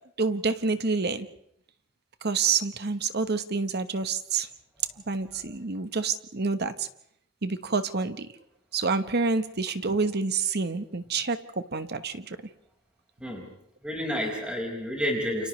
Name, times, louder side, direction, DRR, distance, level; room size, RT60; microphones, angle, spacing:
voice 1, 0.2-1.3 2.2-4.5 5.1-6.9 7.4-8.3 8.7-12.4, right 4 dB, 55° right, 10 dB, 1.2 m, -28 dB
voice 2, 13.8-15.5, equal, 5° right, -1 dB, 5.4 m, -30 dB
29.5 x 29.0 x 3.3 m, 0.72 s
head